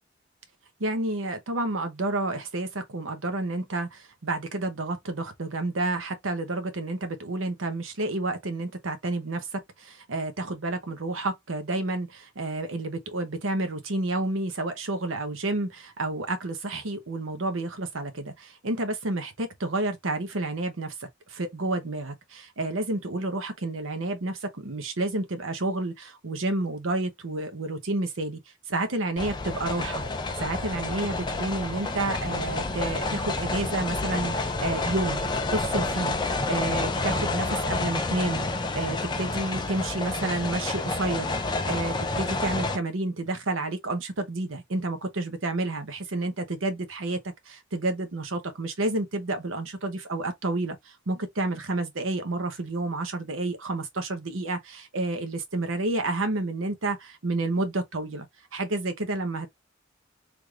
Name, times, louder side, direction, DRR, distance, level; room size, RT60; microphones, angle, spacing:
voice 1, 0.8-28.4 28.7-30.0 30.4-35.2 35.5-36.2 36.5-47.2 47.5-58.3 58.5-59.5, right 2 dB, 85° right, 0.8 m, -30 dB
sound 1, 29.2-42.8, left 3 dB, 20° left, 0.4 m, -29 dB
3.4 x 3.2 x 2.3 m
head